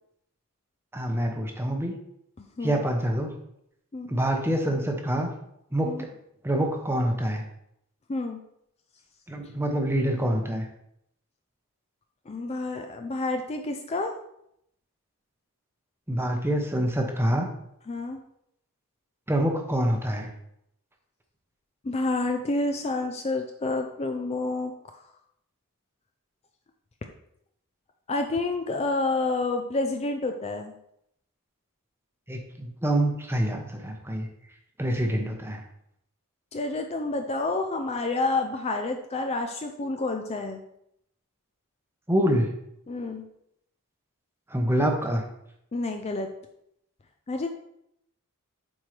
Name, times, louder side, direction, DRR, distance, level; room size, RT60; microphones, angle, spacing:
voice 1, 0.9-2.0 2.6-3.3 4.1-5.3 5.7-6.1 6.4-7.4 9.3-10.7 16.1-17.5 19.3-20.3 32.3-34.3 34.8-35.6 42.1-42.5 44.5-45.2, right 1 dB, 10° right, 3 dB, 0.8 m, -26 dB
voice 2, 2.4-2.8 3.9-4.1 5.9-6.0 8.1-8.4 12.3-14.1 17.9-18.2 21.8-24.7 28.1-30.7 36.5-40.6 42.9-43.2 45.7-46.3 47.3-47.5, left 2 dB, 30° left, 5 dB, 0.4 m, -29 dB
7.7 x 4.4 x 3.2 m, 0.76 s
head